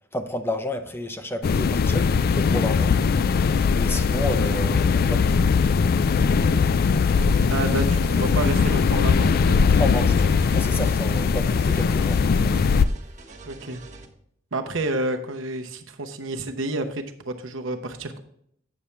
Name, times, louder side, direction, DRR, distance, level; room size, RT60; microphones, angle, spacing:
voice 1, 0.1-3.0 3.7-5.4 9.8-12.2, left 1 dB, 10° left, 0.6 m, -31 dB
sound 1, 1.4-12.8, left 5 dB, 50° left, 0.3 m, -20 dB
sound 2, 7.2-14.1, right 3 dB, 40° right, 1.1 m, -45 dB
voice 2, 7.5-9.6 13.5-13.8 14.5-18.2, right 2 dB, 70° right, 0.9 m, -29 dB
8.5 x 7.1 x 3.2 m
head